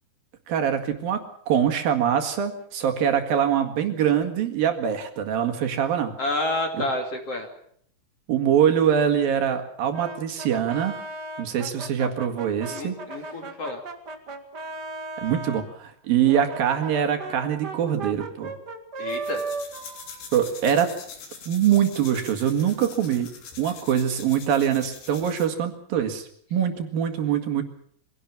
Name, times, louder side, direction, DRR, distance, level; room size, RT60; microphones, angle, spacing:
voice 1, 0.5-6.2 6.8-6.9 8.3-11.0 11.4-13.0 15.2-18.5 20.3-21.0 21.5-23.3 23.6-27.6, right 9 dB, 60° right, 6 dB, 3.5 m, -23 dB
voice 2, 6.2-7.5 12.7-13.8 19.0-19.4, left 2 dB, 40° left, 4 dB, 3.1 m, -29 dB
Brass instrument, 9.9-15.7 16.3-21.0, right 3 dB, 40° right, 1.6 m, -36 dB
sound 1, 19.1-25.6, left 6 dB, 90° left, 5.6 m, -43 dB
24.0 x 17.5 x 7.2 m, 0.64 s
omnidirectional pair, 4.9 m